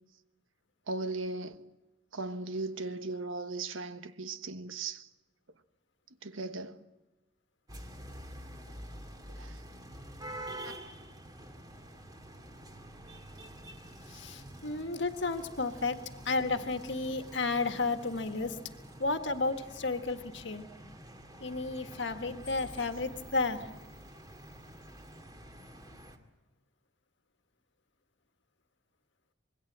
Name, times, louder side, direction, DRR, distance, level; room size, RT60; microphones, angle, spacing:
voice 1, 0.9-1.7 2.1-5.1 6.2-6.8 9.4-9.6 10.6-10.7, right 3 dB, 80° right, 1.3 m, -37 dB
sound 1, 7.7-26.2, right 1 dB, 20° right, 2.2 m, -48 dB
voice 2, 14.1-18.6 19.0-20.6 21.4-23.7, left 3 dB, 60° left, 1.7 m, -32 dB
26.0 x 22.0 x 7.5 m
head